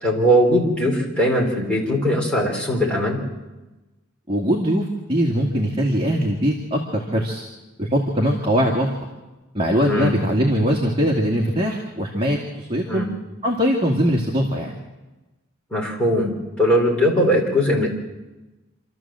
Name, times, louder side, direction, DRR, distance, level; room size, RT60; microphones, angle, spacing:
voice 1, 0.0-3.2 9.8-10.1 12.9-13.1 15.7-17.9, equal, 5° left, -3 dB, 4.0 m, -20 dB
voice 2, 4.3-7.4 7.8-9.1 9.5-13.1 13.4-14.8, equal, 25° right, -1 dB, 2.1 m, -21 dB
27.0 x 13.0 x 7.6 m, 1.1 s
head